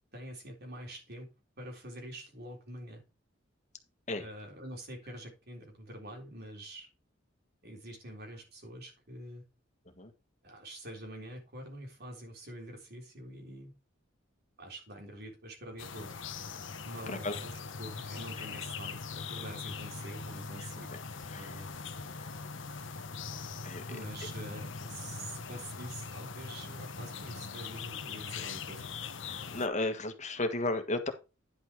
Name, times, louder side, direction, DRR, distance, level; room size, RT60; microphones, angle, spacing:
voice 1, 0.1-1.3 1.6-3.0 4.2-6.9 7.6-9.4 10.4-13.7 14.6-16.2 16.8-17.5 17.8-20.9 21.4-21.7 23.9-28.9, right 1 dB, 55° right, 1 dB, 3.8 m, -46 dB
sound 1, 15.8-29.7, left 5 dB, 75° left, 1.0 m, -41 dB
voice 2, 21.3-21.6 22.2-22.3 23.6-23.8 29.2-31.1, left 2 dB, 40° left, 7 dB, 1.6 m, -34 dB
10.5 x 5.5 x 4.7 m, 0.29 s
head